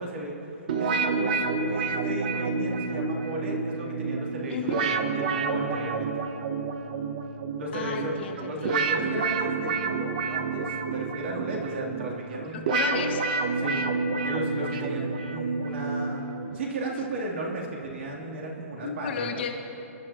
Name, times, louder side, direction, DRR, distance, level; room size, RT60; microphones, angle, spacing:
voice 1, 0.0-6.2 7.6-8.1 8.4-12.6 13.6-13.8 14.2-16.2 16.5-19.4, right 2 dB, 55° right, -2 dB, 3.2 m, -34 dB
sound 1, 0.7-16.6, right 4 dB, 35° right, 0.9 m, -29 dB
voice 2, 4.5-4.9 7.7-9.2 12.5-13.2 18.8-19.5, left 7 dB, 45° left, 2 dB, 1.6 m, -33 dB
29.0 x 11.5 x 3.0 m, 2.9 s
hypercardioid pair, 180°, 8 cm